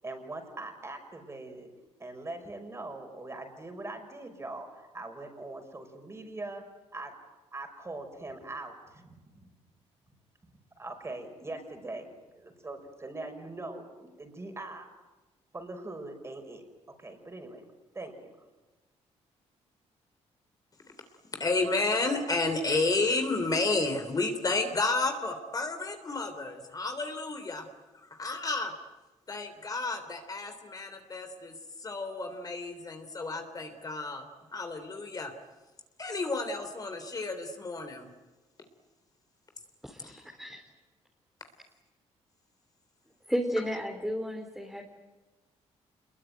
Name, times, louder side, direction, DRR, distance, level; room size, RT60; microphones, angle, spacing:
voice 1, 0.0-1.7 2.0-6.6 6.9-7.1 7.5-9.5 10.8-12.1 12.3-14.9 15.5-16.6 17.0-17.6 17.9-18.4, right 2 dB, 25° right, 5 dB, 5.7 m, -42 dB
voice 2, 21.4-27.6 28.1-28.7 29.3-31.5 31.8-34.2 34.5-35.3 36.0-38.1, left 3 dB, 30° left, 6 dB, 3.4 m, -31 dB
voice 3, 39.8-40.6 43.3-44.8, equal, 5° right, 1 dB, 3.7 m, -33 dB
26.5 x 22.0 x 9.4 m, 1.2 s
cardioid pair, 100°, 12 cm